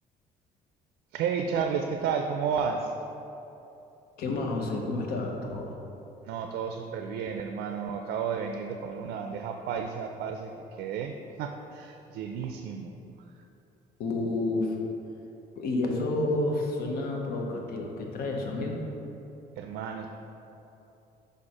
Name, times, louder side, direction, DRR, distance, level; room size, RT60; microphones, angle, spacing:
voice 1, 1.1-2.9 6.2-13.0 19.6-20.1, right 6 dB, 85° right, 4 dB, 0.4 m, -32 dB
voice 2, 4.2-5.8 14.0-14.8 15.6-18.8, left 2 dB, 65° left, 1 dB, 0.9 m, -30 dB
5.2 x 4.4 x 4.9 m, 2.9 s
cardioid pair, 140°, 17 cm